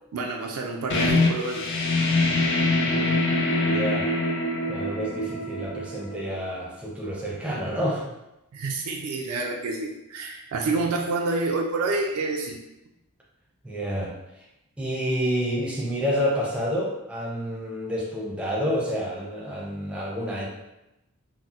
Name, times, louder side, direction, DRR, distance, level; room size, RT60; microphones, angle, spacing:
voice 1, 0.1-1.7 8.5-12.6, right 3 dB, 80° right, 1 dB, 0.4 m, -28 dB
sound 1, 0.9-6.3, left 2 dB, 50° left, 0.5 m, -24 dB
voice 2, 2.6-3.2 3.6-4.1 4.7-8.0 13.6-14.1 14.8-20.5, equal, 5° right, -4 dB, 0.5 m, -29 dB
4.1 x 2.0 x 2.4 m, 0.93 s
head